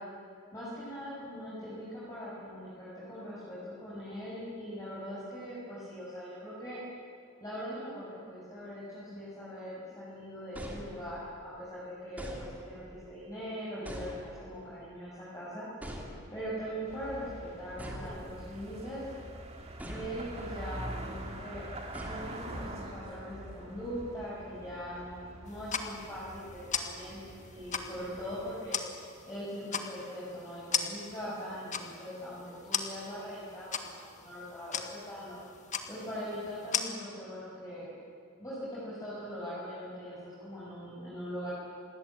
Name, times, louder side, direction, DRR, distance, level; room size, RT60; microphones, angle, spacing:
voice 1, 0.5-6.8 7.4-15.7 16.3-19.0 19.8-21.6 22.1-28.8 29.2-35.4 35.9-37.9 38.4-41.5, equal, 15° left, -9 dB, 6.8 m, -41 dB
sound 1, 10.5-11.4 12.2-13.0 13.9-14.7 15.8-16.6 17.8-18.8 19.8-20.6 21.9-22.9, equal, 5° right, 3.0 m, -44 dB
sound 2, 16.9-28.6, right 1 dB, 30° right, 2.9 m, -45 dB
sound 3, 25.5-36.8, left 7 dB, 35° left, 1.7 m, -39 dB
27.5 x 21.0 x 8.9 m, 2.3 s
head